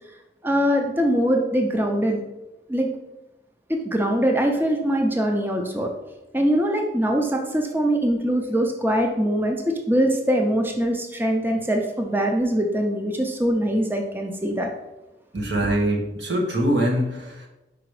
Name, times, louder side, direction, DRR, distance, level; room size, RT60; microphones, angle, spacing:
voice 1, 0.4-2.2 2.7-2.9 3.7-5.9 6.3-14.7, equal, 10° right, 2 dB, 0.5 m, -22 dB
voice 2, 15.3-17.5, right 1 dB, 85° right, 0 dB, 1.5 m, -23 dB
5.0 x 4.9 x 4.8 m, 1.0 s
head